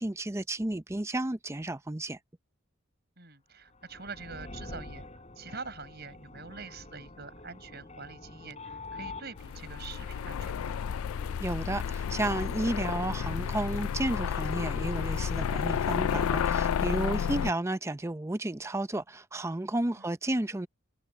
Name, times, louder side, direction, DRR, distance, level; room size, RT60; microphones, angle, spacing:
voice 1, 0.0-2.2 11.4-20.7, right 1 dB, 15° right, 0.5 m, -32 dB
voice 2, 3.2-5.0 5.4-10.8 17.3-17.5 20.0-20.1, right 4 dB, 50° right, 7.0 m, -45 dB
sound 1, 3.7-15.0, left 2 dB, 30° left, 5.6 m, -48 dB
sound 2, 9.4-17.5, left 7 dB, 85° left, 0.4 m, -31 dB
head